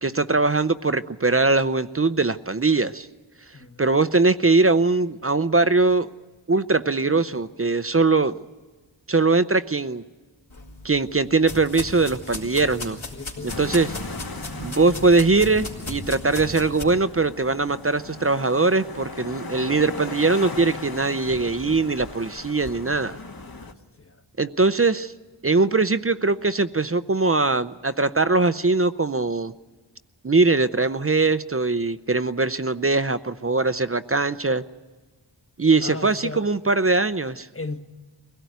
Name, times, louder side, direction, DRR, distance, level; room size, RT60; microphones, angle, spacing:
voice 1, 0.0-3.1 3.8-6.1 6.5-8.4 9.1-10.0 10.8-13.0 13.4-13.9 14.6-23.2 24.4-25.1 25.4-29.5 30.2-34.6 35.6-37.5, right 3 dB, 30° right, 0.6 m, -21 dB
voice 2, 3.5-3.9 13.1-13.7 23.6-24.2 35.8-36.5 37.5-37.8, left 3 dB, 30° left, 1.4 m, -36 dB
sound 1, 10.5-16.8, left 2 dB, 85° left, 3.9 m, -36 dB
sound 2, 13.5-23.7, left 3 dB, 50° left, 1.6 m, -37 dB
23.5 x 17.0 x 9.4 m
wide cardioid pair, 70°, 46 cm